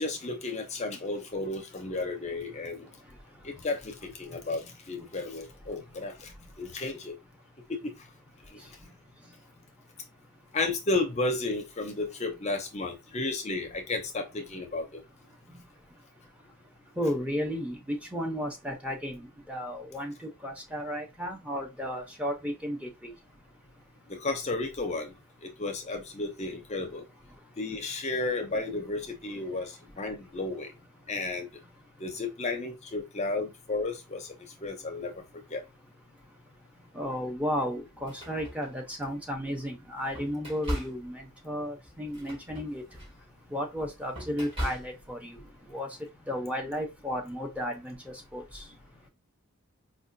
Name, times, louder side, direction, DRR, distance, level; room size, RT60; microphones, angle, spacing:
voice 1, 0.0-2.8 3.4-6.3 6.6-7.1 7.7-7.9 10.5-15.0 24.2-25.1 25.6-27.0 27.6-29.7 30.0-30.7 31.1-31.5 32.0-34.3 34.6-35.1 35.5-35.6, left 2 dB, 30° left, 0.5 m, -33 dB
voice 2, 17.0-23.1 36.9-42.8 43.5-45.4 45.7-45.9 46.3-48.6, equal, 5° right, 0.6 m, -34 dB
sound 1, 37.0-37.2 37.9-39.2 39.7-45.3, equal, 25° right, 1.7 m, -39 dB
4.7 x 2.2 x 2.6 m
head